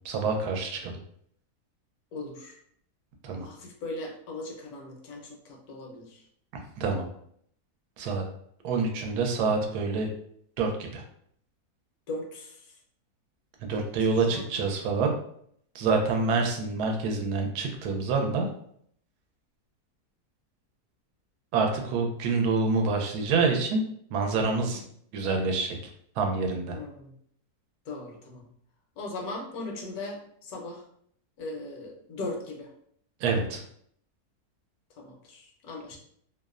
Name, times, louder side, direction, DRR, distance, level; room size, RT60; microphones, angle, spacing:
voice 1, 0.0-0.9 3.2-3.5 6.8-7.1 8.0-8.2 8.6-10.1 10.6-11.0 13.6-15.2 15.7-18.5 21.5-23.8 24.1-24.8 25.1-25.8 26.2-26.8 33.2-33.6, right 4 dB, 85° right, 2 dB, 1.1 m, -27 dB
voice 2, 2.1-2.6 3.3-6.2 12.1-12.7 13.7-13.9 14.2-14.7 26.7-27.1 27.9-28.5 29.0-30.8 31.4-32.7 35.0-36.0, left 2 dB, 75° left, 0 dB, 1.1 m, -39 dB
2.9 x 2.0 x 2.3 m, 0.65 s
omnidirectional pair, 1.6 m